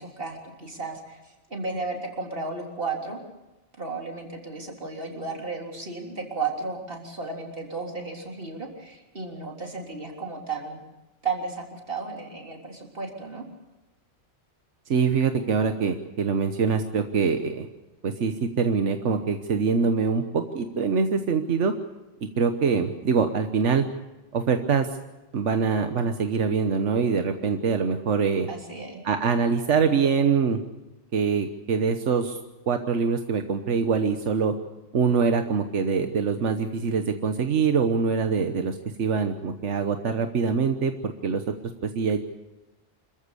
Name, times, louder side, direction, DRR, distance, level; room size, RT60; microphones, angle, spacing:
voice 1, 0.0-3.2 3.8-10.8 11.2-13.4 28.5-29.0, right 4 dB, 50° right, 1 dB, 3.8 m, -34 dB
voice 2, 14.9-17.7 18.0-21.7 22.4-23.8 24.3-24.9 25.3-28.5 29.0-30.6 31.1-32.4 32.7-34.5 34.9-41.4 41.8-42.2, right 5 dB, 90° right, 7 dB, 1.4 m, -24 dB
26.0 x 14.5 x 8.3 m, 1.1 s
omnidirectional pair, 1.2 m